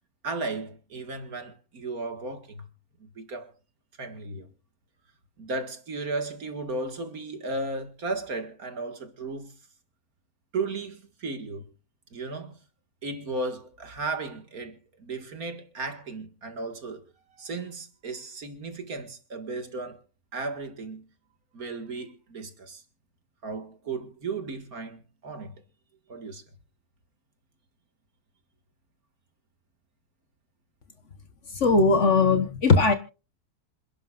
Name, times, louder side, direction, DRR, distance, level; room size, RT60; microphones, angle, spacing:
voice 1, 0.2-2.7 3.0-3.5 4.0-4.5 5.4-9.5 10.5-11.6 12.1-12.6 13.0-17.0 17.4-20.0 20.3-21.0 21.5-22.8 23.4-25.5 26.1-26.4, right 3 dB, 65° right, 2.4 m, -35 dB
voice 2, 31.5-32.9, left 4 dB, 50° left, 1.5 m, -19 dB
27.5 x 11.0 x 2.5 m
omnidirectional pair, 1.6 m